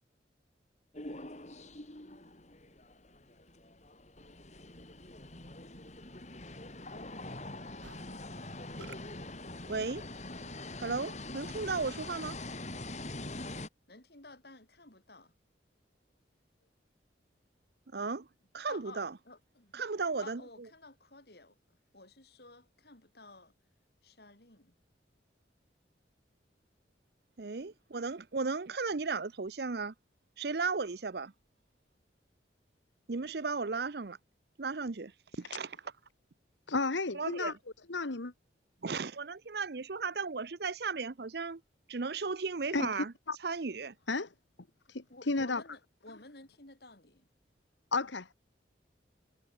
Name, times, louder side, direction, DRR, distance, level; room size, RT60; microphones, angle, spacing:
sound 1, 0.9-13.7, left 2 dB, 40° left, 4.3 m, -44 dB
Musical instrument, 7.8-12.1, right 3 dB, 80° right, 5.3 m, -58 dB
voice 1, 9.7-10.0 10.8-12.4 17.9-18.3 18.5-19.1 19.7-20.4 27.4-29.9 30.4-31.3 33.1-34.2 34.6-35.7 37.1-37.5 38.8-41.6 41.9-43.1 43.4-43.9, right 4 dB, 60° right, 0.7 m, -35 dB
voice 2, 13.9-15.3 16.6-16.7 18.7-19.9 20.2-21.6 21.9-23.5 24.0-24.8 45.1-47.3, left 2 dB, 55° left, 4.0 m, -53 dB
voice 3, 36.7-37.5 37.9-38.3 42.7-43.4 44.1-44.3 44.9-45.6 47.9-48.3, left 3 dB, 80° left, 1.5 m, -33 dB
head